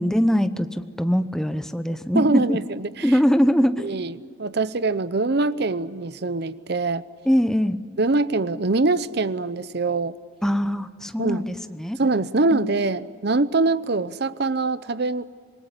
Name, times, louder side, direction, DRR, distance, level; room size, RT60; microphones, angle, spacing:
voice 1, 0.0-2.6 3.0-3.9 7.3-7.8 10.4-12.0 12.5-12.6, equal, 5° left, 10 dB, 0.8 m, -22 dB
voice 2, 2.1-3.1 3.8-7.0 8.0-10.2 11.2-11.5 12.0-15.2, right 3 dB, 55° right, 15 dB, 0.8 m, -23 dB
26.5 x 20.0 x 9.8 m, 2.1 s
head